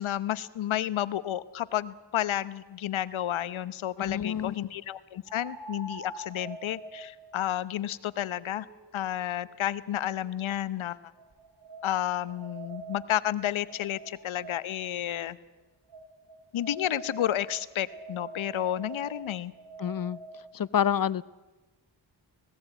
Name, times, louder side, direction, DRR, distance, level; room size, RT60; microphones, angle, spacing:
voice 1, 0.0-8.7 8.9-11.0 11.8-15.4 16.5-19.5, left 12 dB, 75° left, 17 dB, 1.0 m, -31 dB
sound 1, 2.7-2.8 5.2-10.4 11.2-14.9 15.9-20.5, right 3 dB, 55° right, 5.5 m, -46 dB
voice 2, 4.0-4.6 19.8-20.2 20.5-21.2, left 9 dB, 45° left, 21 dB, 0.7 m, -28 dB
19.0 x 17.0 x 9.0 m, 1.2 s
supercardioid pair, 45°, 48 cm